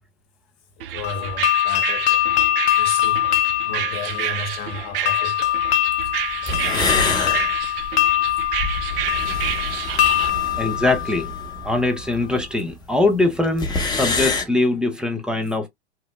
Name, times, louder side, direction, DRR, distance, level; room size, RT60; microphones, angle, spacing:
voice 1, 0.8-2.2 2.7-3.3 3.6-5.6 5.9-6.1 6.4-7.5 9.3-9.6 10.1-10.2, left 4 dB, 45° left, 1.0 m, -34 dB
sound 1, 0.8-10.3, right 11 dB, 60° right, 0.5 m, -30 dB
sound 2, 1.0-11.9, left 14 dB, 80° left, 0.5 m, -23 dB
sound 3, 6.2-6.3 6.5-12.5 12.7-12.8 13.0-13.1 13.4-14.4, left 3 dB, 15° left, 0.8 m, -26 dB
voice 2, 10.6-11.3 11.6-15.7, left 2 dB, 5° right, 0.4 m, -22 dB
3.1 x 2.0 x 2.8 m
hypercardioid pair, 110°, 32 cm